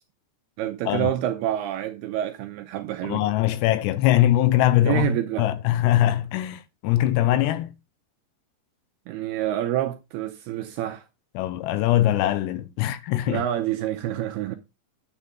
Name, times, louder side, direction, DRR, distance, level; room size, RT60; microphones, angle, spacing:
voice 1, 0.6-3.3 4.8-5.5 9.1-11.1 13.3-14.6, right 12 dB, 85° right, 2.4 m, -27 dB
voice 2, 3.0-7.7 11.4-13.4, left 13 dB, 80° left, 2.8 m, -22 dB
10.0 x 7.2 x 3.7 m
omnidirectional pair, 5.2 m